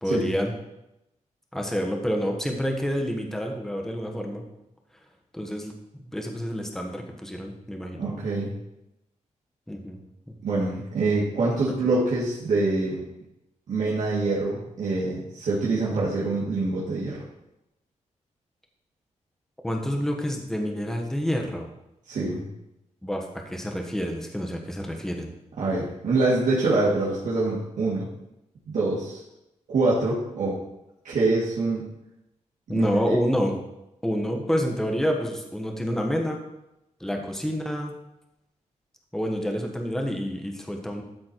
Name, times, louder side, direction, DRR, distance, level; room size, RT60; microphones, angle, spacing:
voice 1, 0.0-0.5 1.5-4.4 5.3-5.7 6.0-8.0 9.7-10.0 10.3-10.4 11.7-11.9 19.6-21.7 23.0-25.3 32.7-33.5 34.0-36.4 37.0-37.9 39.1-41.0, equal, 5° left, 1 dB, 1.2 m, -28 dB
voice 2, 8.0-8.5 10.4-13.0 13.7-17.2 22.1-22.5 25.6-28.1 28.7-29.2 29.7-30.6 31.0-31.8 32.7-32.9, right 3 dB, 80° right, -7 dB, 2.1 m, -25 dB
12.0 x 4.2 x 4.5 m, 0.89 s
wide cardioid pair, 110°, 13 cm